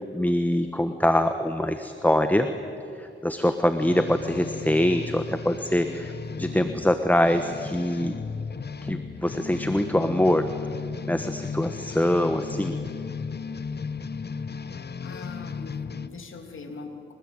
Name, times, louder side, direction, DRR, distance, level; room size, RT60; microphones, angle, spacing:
voice 1, 0.1-2.5 3.0-8.1 8.8-10.5 11.1-12.8, left 1 dB, 10° left, 8 dB, 1.3 m, -24 dB
sound 1, 3.8-16.1, left 5 dB, 55° left, 1.0 m, -35 dB
voice 2, 15.0-17.1, left 4 dB, 75° left, 5 dB, 3.0 m, -41 dB
24.5 x 19.5 x 8.9 m, 2.7 s
cardioid pair, 60°, 21 cm